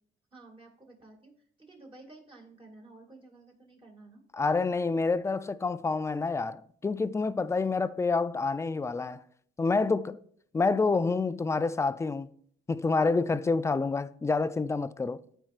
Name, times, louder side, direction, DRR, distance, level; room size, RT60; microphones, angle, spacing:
voice 1, 0.3-4.2, right 2 dB, 25° right, 2.0 m, -53 dB
voice 2, 4.3-9.2 9.6-10.2 10.5-12.3 12.7-15.2, left 4 dB, 15° left, 0.3 m, -28 dB
13.5 x 4.5 x 2.4 m
cardioid pair, 90°, 20 cm